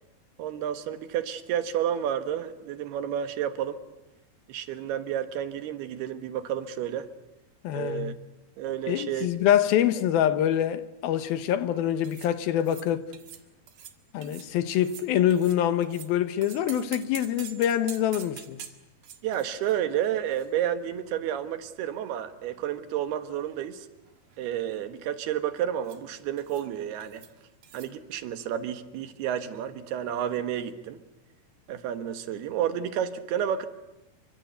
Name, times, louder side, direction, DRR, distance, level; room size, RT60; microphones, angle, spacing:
voice 1, 0.4-3.8 4.5-7.1 7.7-8.1 8.6-9.3 19.2-23.9 24.4-27.2 27.7-31.0 31.7-33.7, right 10 dB, 90° right, 3.5 m, -31 dB
voice 2, 7.6-8.2 8.9-13.1 14.1-18.6, left 10 dB, 75° left, 2.9 m, -25 dB
sound 1, 12.0-12.3 12.6-12.9 13.1-13.4 13.7-14.0 14.2-14.5 14.8-16.1 16.4-21.1 21.4-21.5 22.2-23.1 23.4-23.7 23.9-24.4 25.8-26.0 26.4-26.7 27.0-27.3 27.6-27.9, right 9 dB, 65° right, 3.3 m, -47 dB
28.5 x 24.5 x 8.1 m
omnidirectional pair, 4.4 m